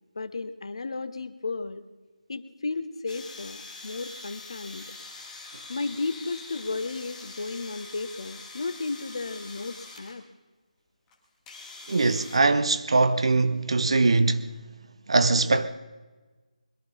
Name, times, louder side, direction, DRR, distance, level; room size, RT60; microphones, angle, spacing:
voice 1, 0.1-1.8 2.3-4.9 5.7-10.2, left 3 dB, 45° left, 1.0 m, -34 dB
sound 1, 3.1-10.2 11.1-11.2 11.5-12.4, left 3 dB, 10° left, 1.6 m, -44 dB
voice 2, 11.9-14.5 15.1-15.7, right 3 dB, 45° right, 0.8 m, -22 dB
22.0 x 12.5 x 5.3 m
figure-of-eight pair, 160°, 4 cm